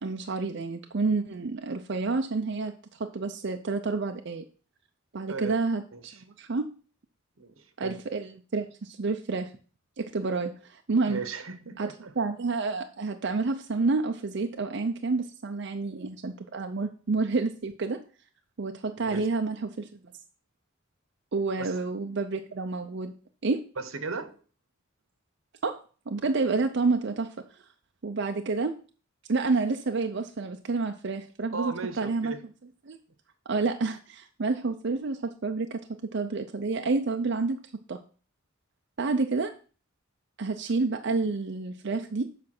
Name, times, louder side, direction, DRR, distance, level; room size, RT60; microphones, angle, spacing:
voice 1, 0.0-4.4 5.1-5.8 6.4-6.7 7.8-9.5 10.0-11.2 11.8-11.9 12.2-18.0 18.6-19.9 21.3-23.1 23.4-23.6 25.6-27.3 28.0-28.7 29.3-32.3 32.9-33.0 33.5-35.8 36.1-37.6 37.9-38.0 39.0-39.5 40.4-42.3, right 3 dB, 60° right, 5 dB, 0.6 m, -29 dB
voice 2, 7.4-8.0 11.0-12.1 19.0-19.3 21.6-21.7 23.8-24.4 31.5-32.4, right 4 dB, 85° right, 10 dB, 1.1 m, -36 dB
7.6 x 5.1 x 5.9 m, 0.39 s
head